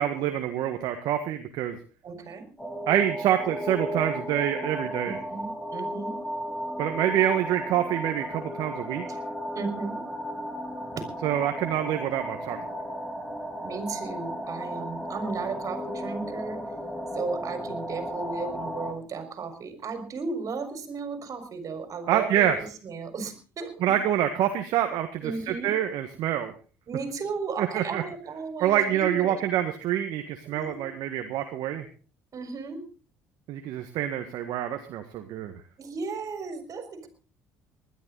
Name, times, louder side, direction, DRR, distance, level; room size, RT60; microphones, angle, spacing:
voice 1, 0.0-1.8 2.9-5.2 6.8-9.1 11.2-12.6 22.1-22.6 23.8-26.5 27.6-28.0 28.6-31.9 33.5-35.5, right 11 dB, 65° right, 6 dB, 1.6 m, -26 dB
voice 2, 2.0-2.5 5.0-6.2 9.1-9.2 9.5-10.0 10.9-11.0 13.6-16.6 17.1-23.7 25.2-25.7 26.9-29.4 30.4-30.9 32.3-32.8 35.8-37.1, right 4 dB, 45° right, 7 dB, 4.8 m, -35 dB
sound 1, 2.6-18.9, equal, 5° left, 3.9 m, -34 dB
20.5 x 12.0 x 4.0 m, 0.36 s
hypercardioid pair, 65°, 8 cm